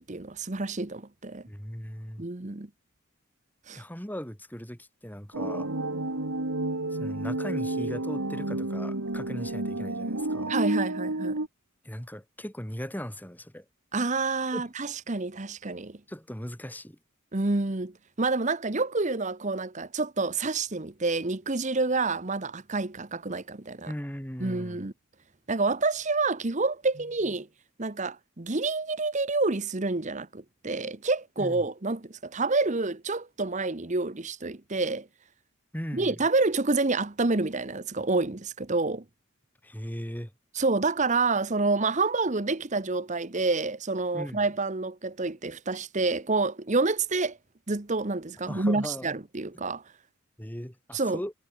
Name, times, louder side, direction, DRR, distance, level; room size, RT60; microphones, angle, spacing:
voice 1, 0.0-1.4 2.2-2.7 3.7-3.8 10.5-11.3 13.9-16.0 17.3-23.9 24.4-24.9 25.5-27.5 27.8-35.1 35.9-39.0 40.5-47.4 47.7-49.8 50.9-51.2, right 3 dB, 35° right, 1.0 m, -28 dB
voice 2, 1.5-2.2 3.7-5.7 7.0-10.5 11.8-13.6 14.5-14.7 16.1-17.0 23.8-24.9 31.4-31.6 35.7-36.2 39.6-40.3 44.1-44.4 48.5-49.1 50.4-51.3, equal, 10° left, 4.0 m, -38 dB
sound 1, 5.3-11.5, right 2 dB, 80° right, 2.4 m, -30 dB
head